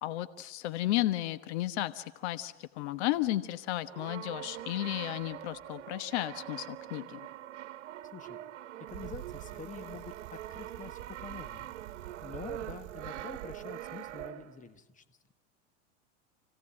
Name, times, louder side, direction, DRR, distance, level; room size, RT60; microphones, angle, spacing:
voice 1, 0.0-7.2, left 15 dB, 65° left, 13 dB, 1.2 m, -33 dB
Brass instrument, 3.9-14.7, right 13 dB, 80° right, 1.2 m, -44 dB
sound 1, 4.3-9.5, right 10 dB, 35° right, 2.7 m, -55 dB
voice 2, 8.1-8.4 8.8-15.3, left 6 dB, 20° left, 10 dB, 1.6 m, -47 dB
Bicycle, 8.9-14.3, right 16 dB, 60° right, 1.0 m, -48 dB
29.0 x 17.0 x 8.8 m, 1.1 s
hypercardioid pair, 110°, 35 cm